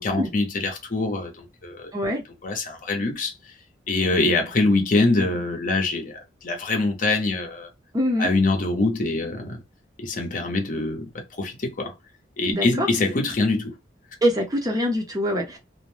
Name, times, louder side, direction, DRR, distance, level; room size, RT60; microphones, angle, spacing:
voice 1, 0.0-1.9 2.4-3.3 3.9-7.7 8.2-9.6 10.0-11.1 11.4-11.9 12.4-13.7, left 2 dB, 45° left, 0.7 m, -24 dB
voice 2, 1.9-2.2 7.9-8.3 12.5-12.9 14.2-15.6, equal, 20° right, 0.6 m, -24 dB
2.5 x 2.1 x 3.1 m
head